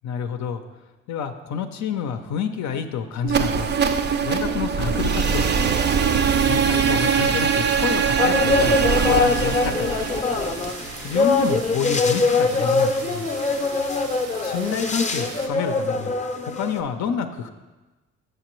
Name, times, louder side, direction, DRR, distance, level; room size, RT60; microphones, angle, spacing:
voice 1, 0.0-0.6 1.1-3.7 4.2-5.6 6.4-10.1 11.0-13.3 14.4-16.1 16.5-17.5, left 7 dB, 70° left, 7 dB, 0.5 m, -28 dB
sound 1, 3.2-11.2, right 6 dB, 35° right, 0.4 m, -22 dB
sound 2, 8.2-16.8, left 3 dB, 25° left, 0.6 m, -23 dB
sound 3, 8.9-15.5, right 5 dB, 75° right, 0.8 m, -40 dB
6.6 x 6.6 x 3.0 m, 1.2 s
cardioid pair, 90°, 30 cm